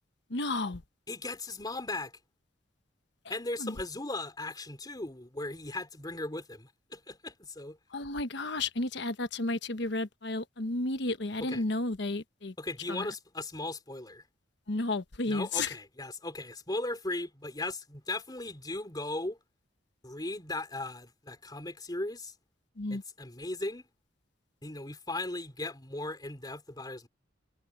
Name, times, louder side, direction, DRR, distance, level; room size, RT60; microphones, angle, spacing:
voice 1, 0.3-0.8 3.6-3.8 7.9-12.5 12.9-13.1 14.7-15.7 22.8-23.0, left 2 dB, 65° left, 1.2 m, -32 dB
voice 2, 1.1-2.1 3.3-7.8 11.4-11.6 12.6-14.2 15.3-19.4 20.0-22.3 22.9-23.8 24.6-27.1, left 2 dB, 20° left, 3.7 m, -37 dB
head